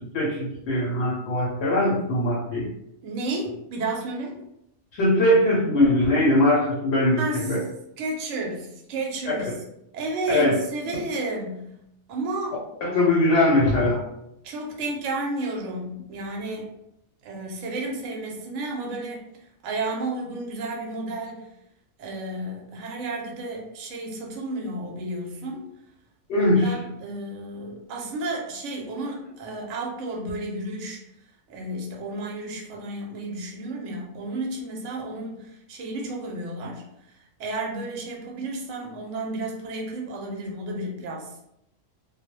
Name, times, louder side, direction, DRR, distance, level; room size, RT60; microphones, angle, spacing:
voice 1, 0.1-2.7 4.9-7.2 7.5-7.6 10.3-10.5 12.8-14.0 26.3-26.7, left 1 dB, 65° left, -2 dB, 0.7 m, -21 dB
voice 2, 3.0-4.4 7.2-7.6 8.0-9.6 9.9-11.8 12.1-12.6 14.4-16.7 17.2-19.2 19.6-21.5 22.0-25.7 26.4-31.0 31.5-41.5, right 2 dB, 70° right, -1 dB, 0.9 m, -32 dB
2.2 x 2.0 x 2.9 m, 0.79 s
omnidirectional pair, 1.4 m